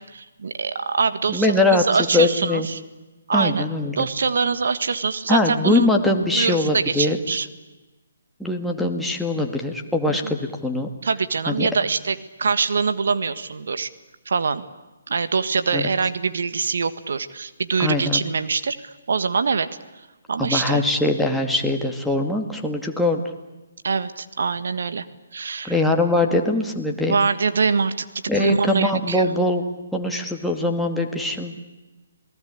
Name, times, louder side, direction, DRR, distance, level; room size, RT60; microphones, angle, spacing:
voice 1, 0.0-2.8 3.3-3.7 4.0-5.9 6.3-7.5 10.1-10.3 11.0-13.9 14.2-14.6 15.1-19.8 20.3-20.8 23.8-25.0 25.3-25.7 27.1-28.0 28.3-29.3, right 5 dB, 65° right, 12 dB, 1.6 m, -24 dB
voice 2, 1.3-1.8 2.1-2.7 3.3-4.1 5.3-7.2 8.4-10.9 11.5-11.7 15.7-15.9 17.8-18.2 20.4-23.2 25.6-27.2 28.3-29.6 29.9-31.6, left 2 dB, ahead, 0 dB, 2.3 m, -22 dB
28.0 x 19.0 x 8.6 m, 1.1 s
figure-of-eight pair, 140°, 0 cm